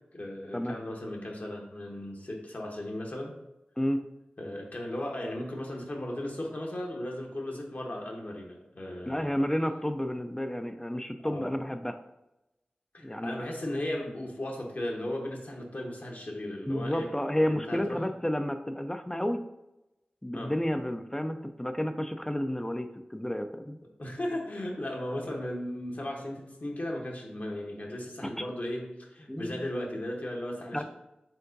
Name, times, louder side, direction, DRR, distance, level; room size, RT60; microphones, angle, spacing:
voice 1, 0.1-3.3 4.4-9.3 11.2-11.5 12.9-17.1 17.4-18.0 20.3-20.5 24.0-30.8, left 1 dB, 55° left, 0 dB, 0.9 m, -36 dB
voice 2, 9.1-12.0 13.0-13.4 16.7-19.4 20.2-23.8 28.4-28.5 29.3-29.5 30.7-30.8, equal, 15° left, 7 dB, 0.3 m, -31 dB
4.6 x 3.7 x 2.6 m, 0.92 s
cardioid pair, 40°, 3 cm